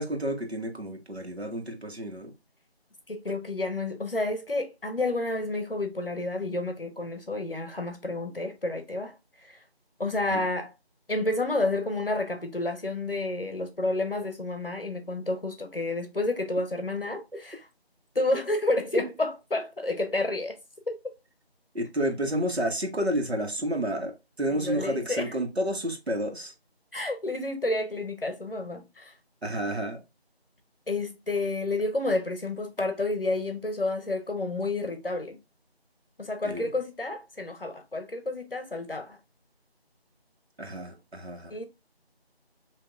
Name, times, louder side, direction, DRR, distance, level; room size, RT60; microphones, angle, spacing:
voice 1, 0.0-2.3 10.3-10.4 21.7-26.5 29.4-30.0 36.4-36.7 40.6-41.5, equal, 80° right, 1.4 m, -30 dB
voice 2, 3.1-9.1 9.4-9.6 10.0-10.7 11.1-17.6 18.1-20.6 20.9-21.0 24.5-25.3 26.9-29.1 30.9-35.4 36.2-39.2 41.5-41.6, left 2 dB, 60° left, 0.8 m, -30 dB
5.6 x 2.8 x 2.3 m
figure-of-eight pair, 180°, 32 cm